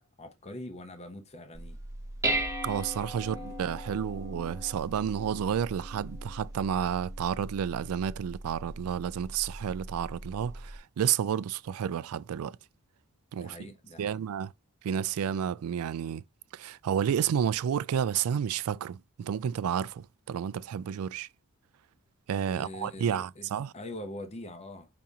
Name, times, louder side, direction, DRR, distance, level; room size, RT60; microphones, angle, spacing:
voice 1, 0.0-1.8 3.2-3.5 13.4-14.2 22.5-24.9, left 1 dB, 30° left, 0.7 m, -43 dB
Dishes pots and pans, 1.5-10.8, right 1 dB, 15° right, 0.7 m, -38 dB
voice 2, 2.6-12.6 13.3-13.7 14.0-14.5 14.8-16.2 16.5-21.3 22.3-23.7, right 8 dB, 80° right, 0.3 m, -31 dB
5.2 x 2.9 x 3.5 m
head